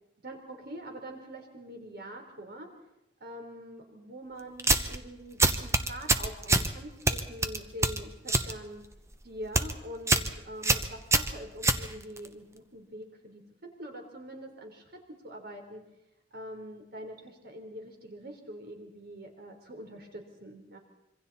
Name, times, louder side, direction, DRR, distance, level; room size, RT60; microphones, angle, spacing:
voice 1, 0.2-2.7 3.2-8.8 9.2-15.8 16.3-20.8, equal, 55° right, 3 dB, 3.9 m, -44 dB
sound 1, 4.6-5.0 5.4-6.7 7.1-8.5 8.8-9.1 9.4-9.7 10.1-10.3 10.6-12.3, right 2 dB, 15° right, 1.0 m, -25 dB
26.5 x 24.0 x 4.2 m, 0.87 s
head